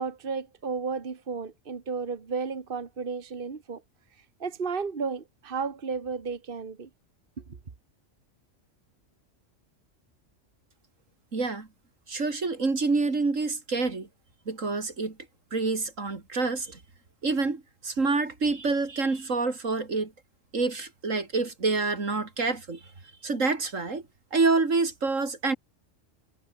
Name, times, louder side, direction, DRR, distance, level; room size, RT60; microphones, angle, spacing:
voice 1, 0.0-3.8 4.4-6.9, right 5 dB, 45° right, 1.6 m, -33 dB
voice 2, 11.3-11.7 12.1-14.1 14.5-15.2 15.5-16.8 17.2-20.1 20.5-22.8 23.2-24.0 24.3-25.5, right 3 dB, 80° right, 3.4 m, -27 dB
omnidirectional pair, 1.3 m